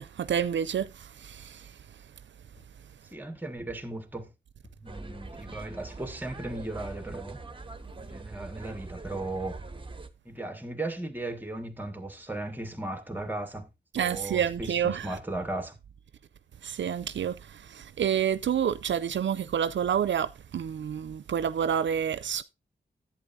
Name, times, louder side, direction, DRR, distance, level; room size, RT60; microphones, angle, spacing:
voice 1, 0.0-2.0 13.9-15.2 16.6-22.4, right 8 dB, 85° right, 0.5 m, -29 dB
sound 1, 2.6-2.9 3.7-4.0 4.6-5.0 5.6-5.9 6.8-7.2 7.9-8.2 8.7-8.8 9.1-9.2, left 1 dB, 85° left, 3.2 m, -56 dB
voice 2, 3.1-4.3 4.8-7.4 8.0-9.6 10.2-13.7 14.0-15.8, right 2 dB, 10° right, 1.6 m, -36 dB
sound 2, 4.8-10.1, right 3 dB, 30° right, 1.1 m, -43 dB
11.0 x 8.5 x 2.6 m
cardioid pair, 60°, 19 cm